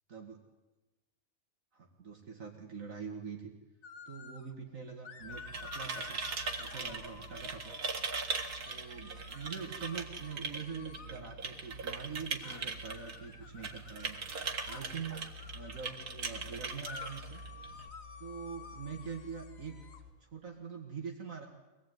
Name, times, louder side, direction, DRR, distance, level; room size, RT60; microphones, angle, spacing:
voice 1, 0.1-0.4 1.7-3.5 4.1-6.2 6.6-7.7 8.6-14.2 14.7-17.4 18.2-19.8 20.2-21.5, right 6 dB, 60° right, 2 dB, 2.3 m, -44 dB
sound 1, 3.8-4.5 5.0-7.8 8.6-11.2 12.4-15.9 16.8-20.0, left 5 dB, 65° left, 1.8 m, -51 dB
sound 2, 5.2-17.9, right 4 dB, 85° right, 2.3 m, -40 dB
sound 3, 15.1-20.1, left 8 dB, 20° left, 4.6 m, -54 dB
24.0 x 18.5 x 9.4 m, 1.1 s
omnidirectional pair, 1.6 m